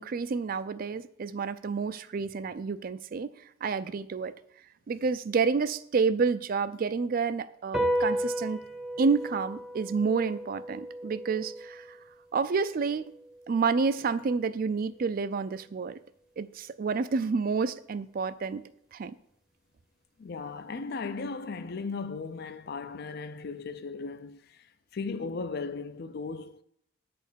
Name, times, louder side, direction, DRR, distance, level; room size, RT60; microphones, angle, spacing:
voice 1, 0.0-3.3 3.6-4.3 4.9-8.6 9.0-12.0 12.3-13.1 13.5-16.0 16.4-18.6 18.9-19.1, right 5 dB, 45° right, 0.4 m, -29 dB
sound 1, 7.7-14.5, right 1 dB, 5° right, 0.7 m, -35 dB
voice 2, 20.2-26.6, left 4 dB, 55° left, 0.5 m, -37 dB
8.1 x 4.3 x 6.8 m
head